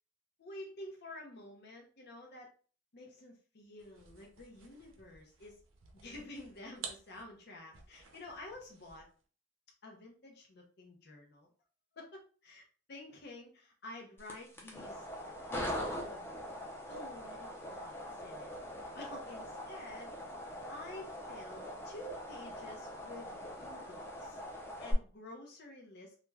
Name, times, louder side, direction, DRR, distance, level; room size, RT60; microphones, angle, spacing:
voice 1, 0.4-2.5 2.9-5.6 5.9-9.1 9.8-11.5 11.9-15.1 15.4-16.4 16.9-18.0 18.2-18.5 18.9-26.1, left 1 dB, 55° left, 0 dB, 0.6 m, -50 dB
sound 1, 3.8-9.2, right 5 dB, 75° right, 0.6 m, -52 dB
sound 2, 14.2-24.9, equal, 10° left, 0.6 m, -42 dB
2.4 x 2.2 x 3.2 m, 0.39 s
head